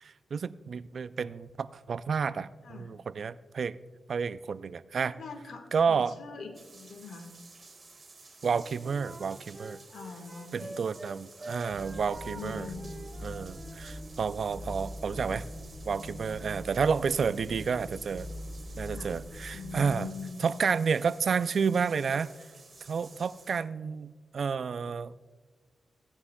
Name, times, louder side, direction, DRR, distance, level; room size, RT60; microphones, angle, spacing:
voice 1, 0.0-3.8 4.1-5.1 5.7-6.1 8.4-9.8 10.5-12.7 13.2-15.4 15.9-18.3 18.8-20.1 20.4-22.3 22.9-25.1, right 6 dB, 65° right, 16 dB, 0.3 m, -30 dB
voice 2, 2.6-2.9 5.0-7.3 9.9-10.8 12.2-12.9 18.9-19.1 19.5-20.5, left 4 dB, 80° left, 5 dB, 1.3 m, -42 dB
sound 1, 6.5-23.6, right 3 dB, 45° right, 1.9 m, -53 dB
Wind instrument woodwind instrument, 8.5-11.1 11.4-14.2, right 2 dB, 30° right, 1.1 m, -46 dB
sound 2, 11.7-19.9, left 1 dB, 5° left, 2.9 m, -42 dB
16.0 x 9.7 x 2.2 m, 1.4 s
cardioid pair, 70°, 0 cm